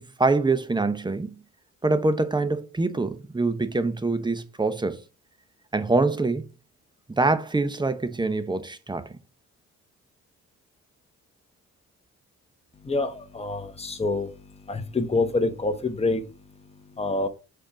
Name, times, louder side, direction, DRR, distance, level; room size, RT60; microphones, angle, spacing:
voice 1, 0.0-1.3 1.8-5.0 5.7-6.5 7.1-9.1, right 3 dB, 15° right, 0.9 m, -24 dB
voice 2, 12.7-17.3, left 3 dB, 20° left, 1.2 m, -27 dB
5.2 x 4.4 x 5.0 m
cardioid pair, 90°, 30 cm